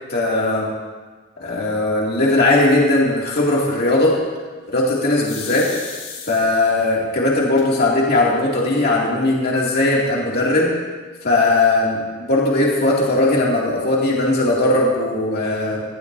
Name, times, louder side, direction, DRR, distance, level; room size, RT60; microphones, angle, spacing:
voice 1, 0.1-0.7 1.4-4.2 4.7-5.7 6.3-10.7 11.2-15.8, left 2 dB, 50° left, -4 dB, 2.4 m, -18 dB
sound 1, 5.2-6.8 7.6-7.7 8.1-8.2 8.4-9.0, left 6 dB, 80° left, 3.9 m, -35 dB
22.0 x 15.0 x 2.7 m, 1.4 s
head